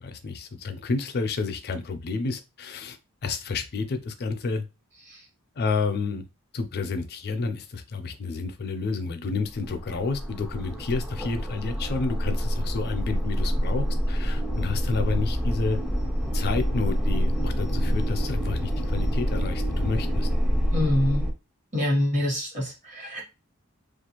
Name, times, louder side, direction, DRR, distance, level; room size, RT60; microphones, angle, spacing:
voice 1, 0.0-3.0 3.2-4.7 5.6-6.2 6.5-15.8 16.3-20.3, left 4 dB, 50° left, 7 dB, 0.5 m, -30 dB
sound 1, 9.4-21.3, equal, 5° right, 0.5 m, -27 dB
voice 2, 20.7-21.2 21.7-23.2, left 1 dB, 35° right, -1 dB, 1.2 m, -25 dB
2.4 x 2.4 x 2.9 m, 0.26 s
head